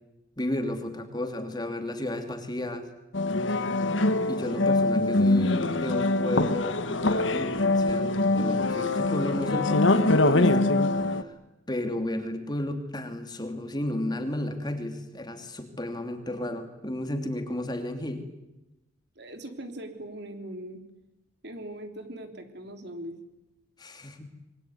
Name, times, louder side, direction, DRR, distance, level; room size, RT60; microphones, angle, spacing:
voice 1, 0.4-2.9 4.3-11.3 11.7-18.2 23.8-24.3, left 1 dB, 20° left, 6 dB, 2.9 m, -33 dB
sound 1, 3.1-11.2, left 2 dB, 75° left, 1.6 m, -24 dB
voice 2, 19.2-20.8 21.4-23.2, right 1 dB, 60° right, 6 dB, 3.6 m, -40 dB
26.0 x 23.0 x 9.7 m, 0.97 s
head